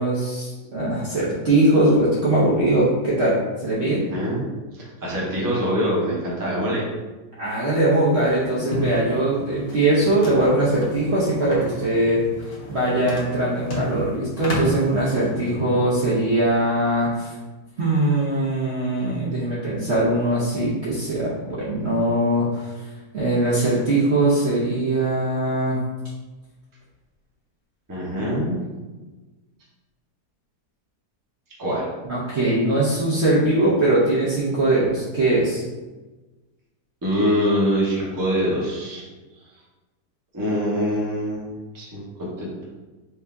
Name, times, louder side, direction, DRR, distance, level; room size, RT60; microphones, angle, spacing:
voice 1, 0.0-4.0 7.4-12.2 12.7-17.3 17.8-22.7 23.1-25.8 28.2-28.5 32.0-35.6, right 1 dB, 50° right, -8 dB, 1.0 m, -21 dB
voice 2, 4.1-4.4 4.7-6.8 15.1-15.8 27.9-28.6 31.6-31.9 37.0-39.1 40.3-42.6, equal, 15° right, -6 dB, 0.9 m, -24 dB
sound 1, 8.1-15.5, left 1 dB, 45° left, 0.8 m, -32 dB
4.5 x 2.7 x 3.5 m, 1.2 s
omnidirectional pair, 1.7 m